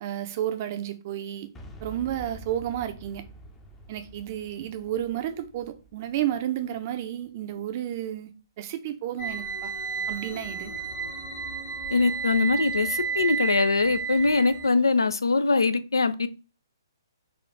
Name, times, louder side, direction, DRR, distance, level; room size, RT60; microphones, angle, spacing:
voice 1, 0.0-1.5 1.8-3.3 3.9-8.3 8.6-9.7 10.1-10.7, right 11 dB, 35° right, 0.6 m, -31 dB
Boom, 1.5-7.4, right 1 dB, 10° left, 0.6 m, -47 dB
sound 1, 9.2-14.7, right 6 dB, 40° left, 1.2 m, -32 dB
voice 2, 11.9-16.3, left 3 dB, 75° left, 0.4 m, -22 dB
4.2 x 2.4 x 4.6 m
figure-of-eight pair, 130°, 2 cm